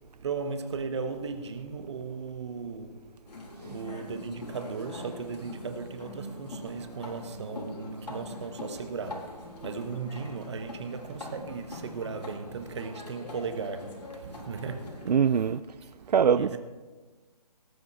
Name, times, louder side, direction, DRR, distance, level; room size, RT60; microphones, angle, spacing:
voice 1, 0.2-3.0 3.7-9.3 9.6-15.6 16.0-16.6, right 5 dB, 45° right, 1.3 m, -37 dB
sound 1, 3.3-15.1, left 1 dB, 80° left, 3.5 m, -43 dB
voice 2, 15.1-15.6 16.1-16.6, right 7 dB, 75° right, 0.4 m, -23 dB
18.5 x 8.7 x 4.1 m
hypercardioid pair, 155°, 21 cm